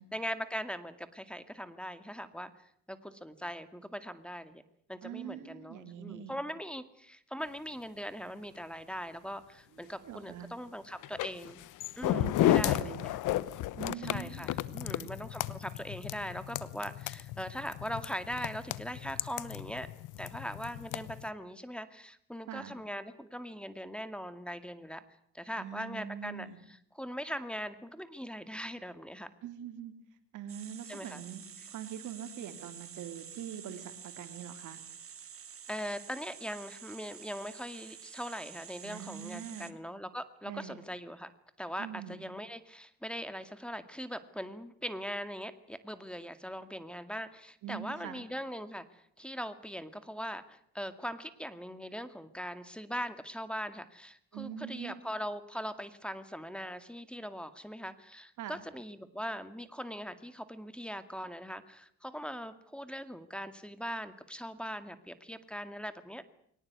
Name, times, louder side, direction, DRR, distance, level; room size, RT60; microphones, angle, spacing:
voice 1, 0.0-2.5 2.9-4.6 4.9-11.6 12.0-13.2 14.0-19.9 20.2-25.0 25.3-29.3 30.9-31.2 35.7-41.3 41.6-66.2, equal, 5° left, 10 dB, 2.1 m, -41 dB
voice 2, 5.0-6.4 9.8-10.5 12.1-13.0 13.8-15.1 22.5-22.7 25.6-26.6 29.4-29.9 30.3-31.4 31.7-34.8 38.8-39.7 40.4-40.8 41.8-42.2 47.6-48.2 54.3-54.9 58.4-58.6, right 9 dB, 80° right, 8 dB, 3.3 m, -43 dB
sound 1, 11.0-21.3, left 14 dB, 85° left, 1.1 m, -33 dB
sound 2, 30.5-39.7, right 7 dB, 45° right, 2.0 m, -49 dB
22.5 x 19.0 x 9.6 m, 0.67 s
cardioid pair, 90°, 30 cm